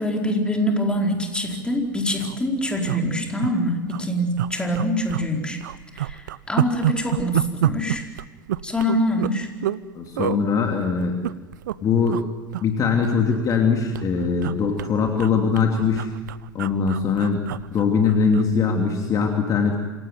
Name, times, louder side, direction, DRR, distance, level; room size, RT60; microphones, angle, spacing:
voice 1, 0.0-5.6 5.9-8.0 8.6-9.5, equal, 10° left, 2 dB, 4.4 m, -24 dB
sound 1, 1.4-1.6 1.8-1.9 2.1-2.4 2.8-3.5 3.9-4.0 4.4-5.3 5.6-9.8 10.2-10.4 11.0-11.8 12.1-12.3 12.5-13.7 13.9-18.5 18.8-19.0, right 13 dB, 65° right, 0.7 m, -28 dB
voice 2, 9.9-11.1 11.8-12.2 12.6-16.1 16.5-17.4 17.7-19.8, left 5 dB, 30° left, 3 dB, 3.0 m, -21 dB
27.0 x 17.5 x 9.2 m, 1.3 s
figure-of-eight pair, 80°, 11 cm